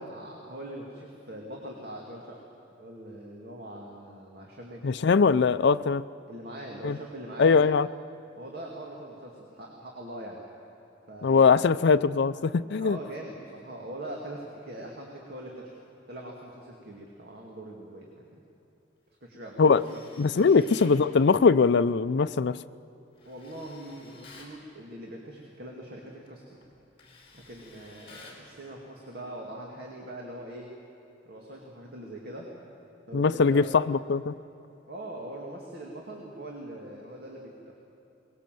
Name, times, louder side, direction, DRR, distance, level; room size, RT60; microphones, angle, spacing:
voice 1, 0.0-2.4 2.8-4.9 6.3-7.6 8.4-10.4 11.1-11.8 12.8-15.7 16.1-18.4 19.2-19.6 19.9-20.0 20.4-20.7 23.2-26.6 27.3-30.7 31.2-32.5 33.1-33.8 34.9-37.7, right 1 dB, 55° right, -1 dB, 2.4 m, -42 dB
voice 2, 4.8-6.0 6.8-7.0 7.4-7.9 11.2-13.0 19.6-19.8 20.2-22.6 33.1-34.3, left 5 dB, 65° left, 12 dB, 0.4 m, -21 dB
Tools, 19.7-21.0 23.2-24.6 26.1-26.3 26.6-28.5, left 3 dB, 30° left, 4.5 m, -52 dB
22.5 x 20.0 x 7.7 m, 2.9 s
head